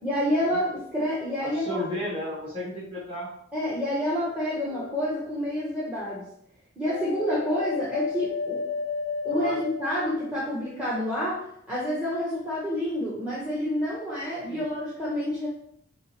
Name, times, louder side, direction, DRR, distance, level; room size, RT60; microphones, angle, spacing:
voice 1, 0.0-1.8 3.5-6.3 6.8-8.6 9.2-15.5, equal, 10° right, -9 dB, 1.0 m, -28 dB
voice 2, 1.4-3.3 9.3-9.6 14.5-14.7, left 1 dB, 25° right, -7 dB, 1.9 m, -33 dB
sound 1, 4.7-5.4 6.8-10.7, left 4 dB, 55° left, 0.5 m, -33 dB
5.5 x 3.2 x 3.0 m, 0.72 s
head